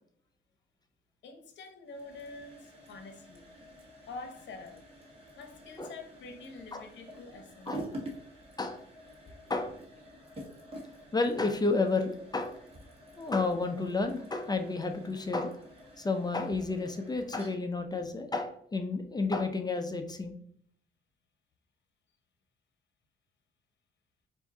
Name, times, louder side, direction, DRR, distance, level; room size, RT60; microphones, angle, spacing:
voice 1, 1.2-3.5 4.1-4.9 5.4-7.9, left 3 dB, 65° left, 0.8 m, -46 dB
sound 1, 1.8-19.6, right 1 dB, 30° right, 1.5 m, -49 dB
voice 2, 11.1-12.6 13.2-15.6 16.0-20.3, left 3 dB, 20° left, 0.5 m, -31 dB
4.4 x 2.7 x 3.7 m
cardioid pair, 90°, 20 cm